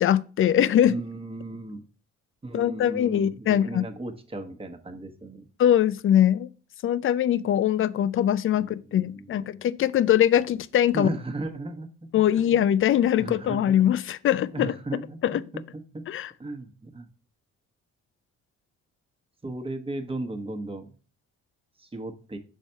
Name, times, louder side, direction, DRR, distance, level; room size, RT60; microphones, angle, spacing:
voice 1, 0.0-1.0 2.5-3.9 5.6-6.5 6.8-11.1 12.1-14.7 15.2-15.4 16.1-16.3, left 10 dB, 45° left, 0.4 m, -22 dB
voice 2, 0.8-1.8 2.4-5.5 8.5-9.5 10.9-11.9 12.2-12.4 13.2-13.8 14.4-16.0 16.4-17.1 19.4-20.9 21.8-22.4, right 2 dB, 20° right, 1.1 m, -36 dB
6.4 x 4.2 x 4.5 m
cardioid pair, 90°, 30 cm